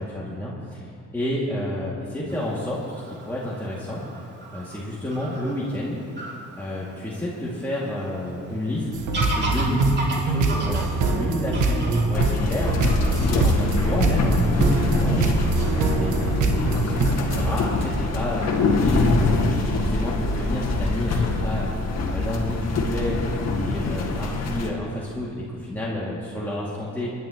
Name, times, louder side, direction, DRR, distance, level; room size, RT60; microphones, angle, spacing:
voice 1, 0.0-2.8 3.1-4.0 4.5-6.0 6.6-8.8 9.1-9.9 10.1-15.3 15.7-19.3 19.7-21.7 22.1-23.2 23.6-27.1, left 1 dB, 5° left, -7 dB, 2.3 m, -30 dB
Fowl / Bird vocalization bird call bird song, 2.3-18.0, right 2 dB, 35° right, 2.7 m, -38 dB
sound 1, 8.9-17.6, right 3 dB, 80° right, 1.3 m, -23 dB
sound 2, 12.1-24.7, left 3 dB, 60° left, 1.8 m, -24 dB
24.0 x 10.5 x 3.0 m, 2.5 s
cardioid pair, 90°, 30 cm